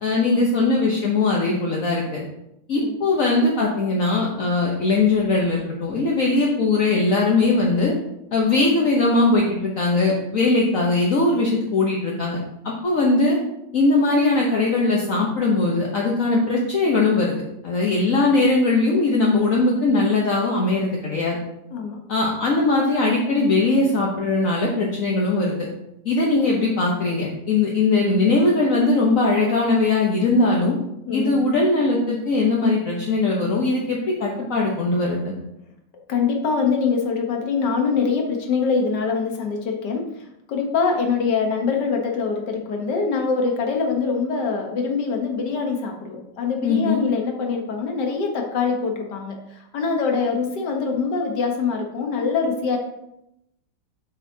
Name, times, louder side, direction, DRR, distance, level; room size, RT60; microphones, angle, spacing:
voice 1, 0.0-2.2 2.7-7.9 8.3-12.4 12.6-13.4 13.7-17.3 17.6-21.4 22.1-25.6 26.0-30.7 31.1-35.3 46.6-47.0, left 3 dB, 55° left, -3 dB, 1.3 m, -20 dB
voice 2, 21.7-22.0 31.1-31.5 36.1-52.8, left 5 dB, 80° left, 2 dB, 1.8 m, -24 dB
8.3 x 6.2 x 2.8 m, 0.83 s
omnidirectional pair, 1.8 m